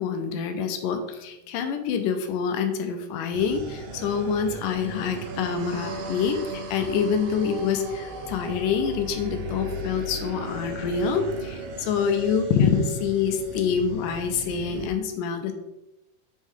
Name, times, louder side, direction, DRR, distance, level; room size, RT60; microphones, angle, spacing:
voice 1, 0.0-15.5, left 6 dB, 80° left, 6 dB, 2.3 m, -26 dB
sound 1, 3.3-14.9, right 2 dB, 80° right, 1.4 m, -36 dB
6.3 x 4.4 x 3.6 m, 0.90 s
omnidirectional pair, 3.8 m